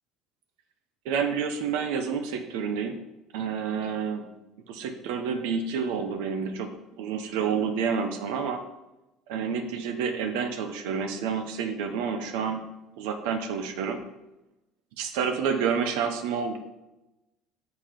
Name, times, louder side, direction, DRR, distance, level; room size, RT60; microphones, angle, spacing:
voice 1, 1.0-2.9 3.3-4.2 4.7-6.7 7.0-8.6 9.3-12.6 13.0-14.0 15.0-16.6, right 6 dB, 85° right, 6 dB, 1.0 m, -29 dB
8.3 x 5.6 x 5.2 m, 0.98 s
cardioid pair, 125°, 0 cm